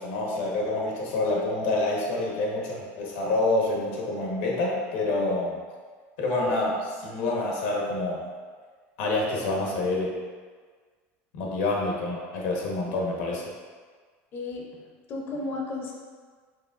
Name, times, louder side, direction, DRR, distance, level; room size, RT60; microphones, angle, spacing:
voice 1, 0.0-5.6 6.2-8.2 9.0-10.2 11.3-13.4, left 2 dB, 85° left, -2 dB, 1.1 m, -27 dB
voice 2, 14.3-14.8 15.1-15.9, left 3 dB, 35° left, -1 dB, 0.6 m, -34 dB
4.9 x 3.5 x 2.4 m, 1.5 s
cardioid pair, 150°, 6 cm